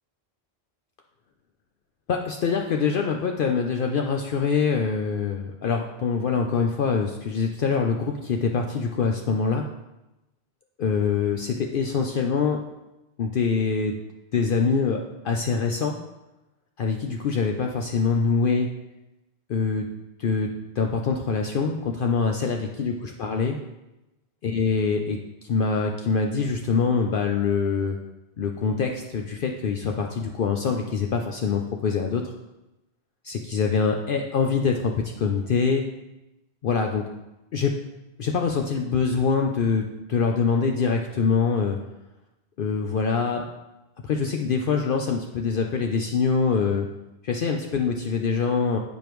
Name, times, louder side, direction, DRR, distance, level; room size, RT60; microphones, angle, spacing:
voice 1, 2.1-9.6 10.8-12.6 13.2-13.9 14.3-16.0 16.8-18.7 19.5-19.8 20.2-20.5 20.8-23.6 24.4-25.2 25.4-28.0 28.4-32.3 33.2-35.8 36.6-37.0 37.5-37.7 38.2-41.8 42.6-43.4 44.0-46.9 47.2-48.8, left 5 dB, 60° left, 2 dB, 0.7 m, -24 dB
8.9 x 5.0 x 3.1 m, 0.96 s
omnidirectional pair, 1.1 m